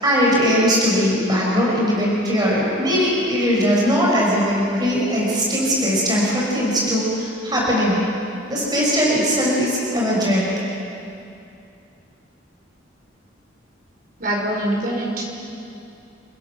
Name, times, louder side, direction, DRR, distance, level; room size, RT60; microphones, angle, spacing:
voice 1, 0.0-8.0 8.5-10.5, equal, 20° right, -5 dB, 5.3 m, -19 dB
voice 2, 14.2-15.2, right 1 dB, 50° right, -1 dB, 4.9 m, -23 dB
29.5 x 16.5 x 6.0 m, 2.6 s
head